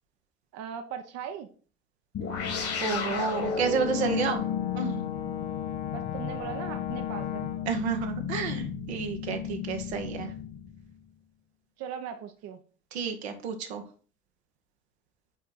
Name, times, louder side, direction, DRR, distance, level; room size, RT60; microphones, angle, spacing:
voice 1, 0.5-1.5 5.9-7.5 11.8-12.6, right 8 dB, 50° right, 8 dB, 0.8 m, -38 dB
sound 1, 2.1-11.0, left 7 dB, 45° left, 1.6 m, -33 dB
voice 2, 2.8-4.5 4.7-5.0 7.7-10.3 12.9-13.8, right 6 dB, 75° right, 5 dB, 1.0 m, -30 dB
Brass instrument, 3.4-7.8, left 10 dB, 75° left, 0.6 m, -39 dB
6.1 x 4.6 x 4.0 m, 0.40 s
figure-of-eight pair, 55°, 32 cm